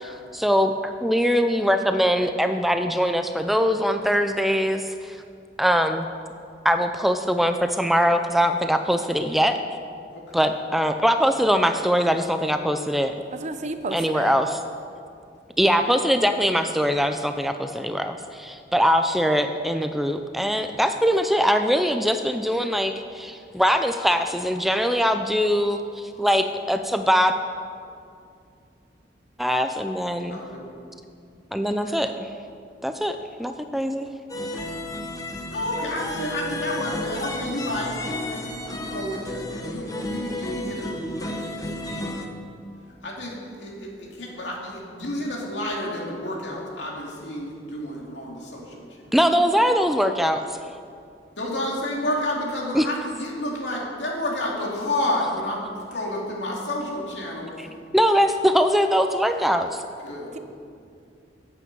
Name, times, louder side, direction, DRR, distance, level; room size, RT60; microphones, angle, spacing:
voice 1, 0.0-5.2 5.6-6.1 6.6-9.6 10.3-13.1 13.9-14.6 15.6-27.4 29.4-30.4 31.5-32.1 32.8-34.1 49.1-50.5 52.7-52.9 57.6-57.7 57.9-59.8, equal, ahead, 7 dB, 0.4 m, -22 dB
voice 2, 10.1-10.4 30.3-30.7 31.8-32.0 35.5-42.0 43.0-48.8 51.4-57.6 60.0-60.4, left 1 dB, 75° left, -2 dB, 2.7 m, -30 dB
voice 3, 13.3-14.3 60.3-60.4, right 3 dB, 40° right, 9 dB, 0.7 m, -31 dB
sound 1, 34.3-42.3, left 1 dB, 20° left, 1.0 m, -32 dB
14.5 x 8.5 x 5.3 m, 2.4 s
head